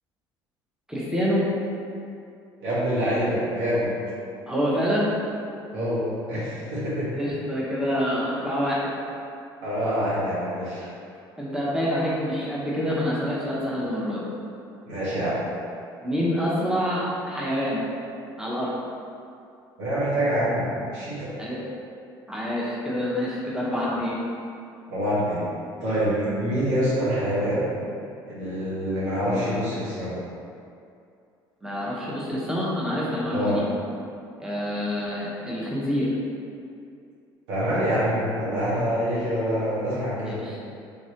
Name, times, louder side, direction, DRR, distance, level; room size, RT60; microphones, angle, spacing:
voice 1, 0.9-1.4 4.5-5.1 7.1-8.9 11.4-14.2 16.0-17.8 18.4-18.7 21.4-21.6 22.3-24.2 31.6-33.6 34.4-36.1 40.3-40.6, equal, 5° right, -7 dB, 0.9 m, -26 dB
voice 2, 2.6-3.9 5.7-7.1 9.6-10.8 14.8-15.4 19.8-21.3 24.9-25.5 25.8-27.7 28.3-30.2 33.3-33.6 37.5-40.4, equal, 80° right, -10 dB, 1.4 m, -26 dB
3.6 x 3.0 x 2.8 m, 2.5 s
hypercardioid pair, 65°, 11 cm